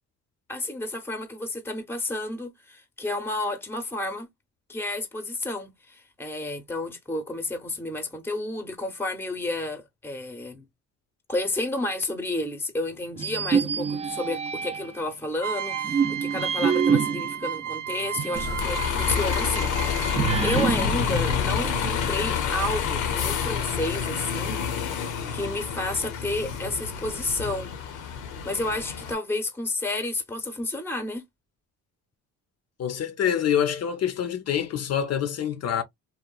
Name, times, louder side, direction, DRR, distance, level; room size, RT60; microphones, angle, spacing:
voice 1, 0.5-4.3 4.7-10.7 11.3-25.0 25.3-27.7 28.4-31.2, left 2 dB, 10° left, 0.7 m, -31 dB
sound 1, 13.2-15.0 15.6-18.6 19.0-19.1 20.2-22.2, right 6 dB, 20° right, 0.4 m, -27 dB
sound 2, 15.4-20.6, right 9 dB, 80° right, 0.7 m, -33 dB
Bus, 18.3-29.1, left 7 dB, 85° left, 0.7 m, -28 dB
voice 2, 32.8-35.8, left 9 dB, 55° left, 0.6 m, -26 dB
2.9 x 2.1 x 2.3 m
cardioid pair, 90°, 30 cm